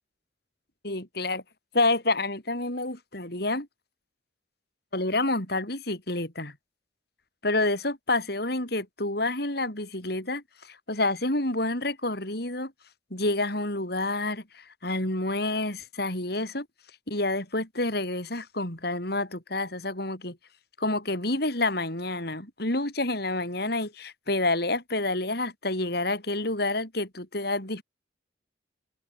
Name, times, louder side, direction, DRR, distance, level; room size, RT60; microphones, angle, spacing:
voice 1, 0.8-1.4 1.7-3.7 4.9-6.5 7.4-12.7 13.1-16.7 17.1-20.4 20.8-27.8, left 2 dB, 55° left, 6.6 m, -28 dB
head